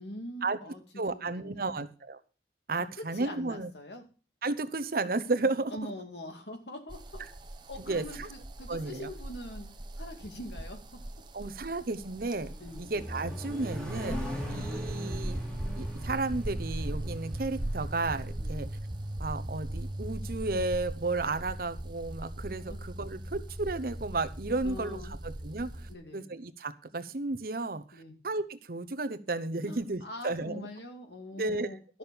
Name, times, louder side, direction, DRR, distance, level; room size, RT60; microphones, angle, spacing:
voice 1, 0.0-0.8 1.1-1.8 2.8-2.9 3.1-4.0 5.7-7.2 7.7-9.7 10.0-11.0 11.4-11.6 12.6-12.9 14.2-14.6 18.4-18.7 22.6-22.8 24.6-25.2 25.8-26.2 27.9-28.1 29.6-32.0, left 1 dB, 75° left, 5 dB, 2.4 m, -44 dB
voice 2, 1.0-2.2 2.7-3.7 4.4-5.7 7.9-8.3 8.7-9.1 11.3-14.2 14.5-15.4 15.8-18.7 19.2-25.7 26.1-30.7 31.4-31.7, right 3 dB, 55° right, 11 dB, 0.8 m, -33 dB
sound 1, 6.9-25.9, right 1 dB, 25° right, 0.9 m, -39 dB
Accelerating revving vroom, 12.3-18.4, equal, 5° left, 2.4 m, -41 dB
12.0 x 6.3 x 7.0 m, 0.35 s
head